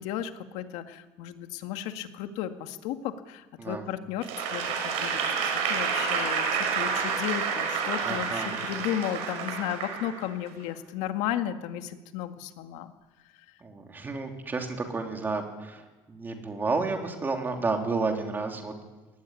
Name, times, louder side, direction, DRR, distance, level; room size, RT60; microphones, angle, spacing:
voice 1, 0.0-12.9 13.3-13.4, left 11 dB, 80° left, 7 dB, 2.0 m, -34 dB
voice 2, 3.6-3.9 6.9-7.0 8.0-8.6 13.6-18.7, right 3 dB, 15° right, 3 dB, 3.1 m, -31 dB
Applause / Crowd, 4.2-10.5, right 6 dB, 75° right, 6.2 m, -29 dB
23.0 x 18.0 x 10.0 m, 1.2 s
cardioid pair, 175°, 11 cm